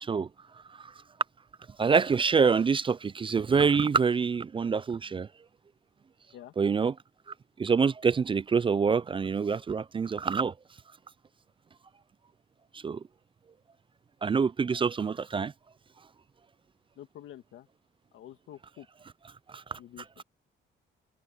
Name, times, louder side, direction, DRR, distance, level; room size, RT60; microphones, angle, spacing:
voice 1, 1.8-5.3 6.6-6.9 7.6-10.5 12.7-13.0 14.2-15.5 19.5-19.8, right 5 dB, 25° right, 0.4 m, -26 dB
voice 2, 17.0-17.7 18.1-18.9 19.8-20.2, left 12 dB, 80° left, 2.0 m, -48 dB
cardioid pair, 90°, 20 cm